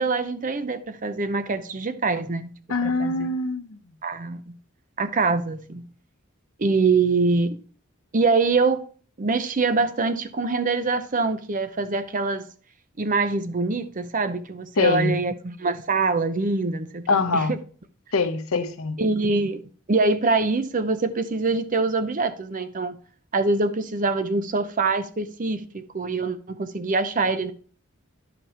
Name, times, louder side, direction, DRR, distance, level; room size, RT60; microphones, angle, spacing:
voice 1, 0.0-2.5 2.8-3.3 4.0-4.4 5.0-5.8 6.6-7.6 8.1-8.8 9.2-12.5 13.0-17.6 19.0-19.6 19.9-23.0 23.3-27.5, right 3 dB, 40° right, 0.6 m, -24 dB
voice 2, 2.7-3.8 14.8-15.2 17.1-17.6 18.1-19.0, left 3 dB, 70° left, 0.8 m, -23 dB
11.0 x 5.1 x 2.9 m
head